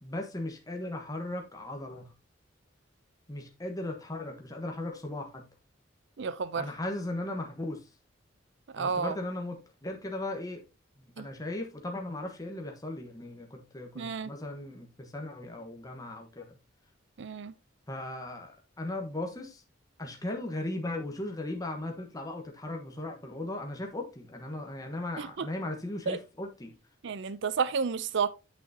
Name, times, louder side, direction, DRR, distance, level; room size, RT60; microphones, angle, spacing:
voice 1, 0.0-2.1 3.3-5.5 6.6-7.9 8.8-10.6 11.0-16.6 17.9-19.6 20.0-26.7, left 1 dB, 20° left, 1.2 m, -37 dB
voice 2, 6.2-6.7 8.7-9.2 11.2-11.3 14.0-14.3 17.2-17.5 25.2-25.5 26.1-26.2 27.0-28.3, right 5 dB, 65° right, 0.5 m, -31 dB
8.6 x 6.1 x 2.7 m
head